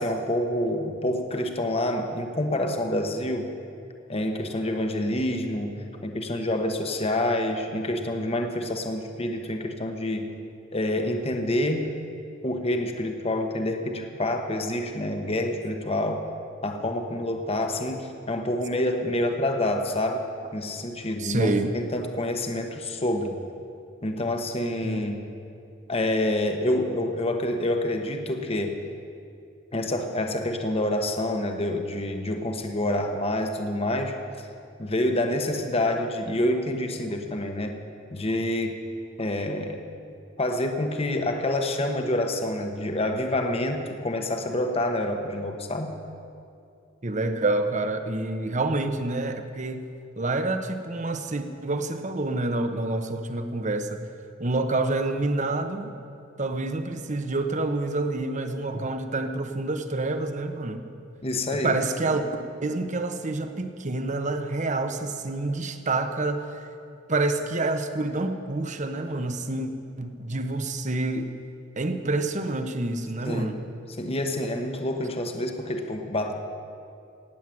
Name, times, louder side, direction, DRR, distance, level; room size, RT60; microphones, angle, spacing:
voice 1, 0.0-3.5 4.1-10.3 10.7-11.9 12.4-16.2 16.6-20.2 20.5-23.4 24.0-25.2 25.9-28.8 29.7-34.1 34.8-37.8 38.1-38.8 39.2-39.8 40.4-45.9 61.2-61.7 73.2-73.5 74.0-76.3, left 1 dB, 30° left, 5 dB, 1.1 m, -27 dB
voice 2, 21.2-21.7 24.8-25.0 47.0-49.9 50.2-54.1 54.4-55.9 56.4-60.8 61.5-62.2 62.6-66.4 67.1-69.7 70.0-71.3 71.8-73.6, right 2 dB, 40° right, 7 dB, 1.0 m, -27 dB
17.5 x 9.1 x 7.7 m, 2.5 s
head